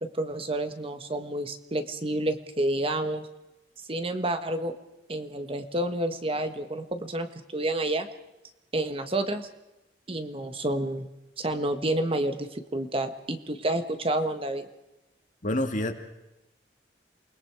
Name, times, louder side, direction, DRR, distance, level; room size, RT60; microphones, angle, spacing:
voice 1, 0.0-3.3 3.9-4.7 5.1-7.3 7.5-8.1 8.7-9.5 10.1-11.1 11.4-14.6, right 1 dB, 30° right, 7 dB, 1.4 m, -29 dB
voice 2, 15.4-15.9, left 1 dB, 45° left, 6 dB, 2.1 m, -27 dB
28.0 x 21.0 x 4.8 m, 0.95 s
head